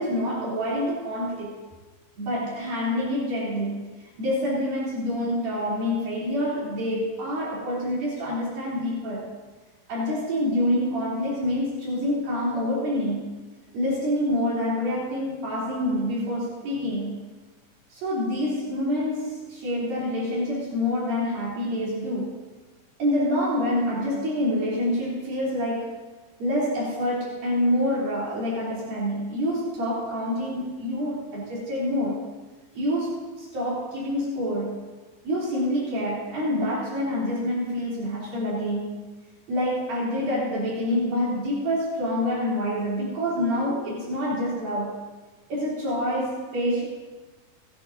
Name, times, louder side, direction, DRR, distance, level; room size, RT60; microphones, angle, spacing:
voice 1, 0.0-1.6 2.2-9.3 9.9-13.4 13.7-17.2 17.9-22.4 23.0-25.9 26.4-32.3 32.7-34.8 35.2-39.0 39.5-45.0 45.5-46.8, left 1 dB, 70° right, -7 dB, 5.2 m, -27 dB
28.0 x 11.0 x 2.7 m, 1.3 s
omnidirectional pair, 4.2 m